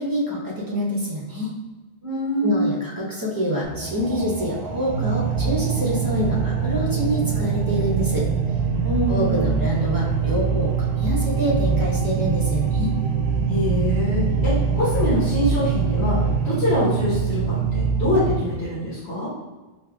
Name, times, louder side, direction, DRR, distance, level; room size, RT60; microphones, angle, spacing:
voice 1, 0.0-1.5 2.4-8.3 9.1-12.9, equal, 20° right, -5 dB, 0.8 m, -26 dB
voice 2, 2.0-2.7 8.8-9.6 13.5-19.3, left 1 dB, 85° left, -10 dB, 1.5 m, -24 dB
sound 1, 3.6-18.6, right 3 dB, 80° right, 0.8 m, -31 dB
sound 2, 4.9-18.3, right 6 dB, 30° left, 1.2 m, -24 dB
5.0 x 2.7 x 2.3 m, 1.2 s
omnidirectional pair, 1.1 m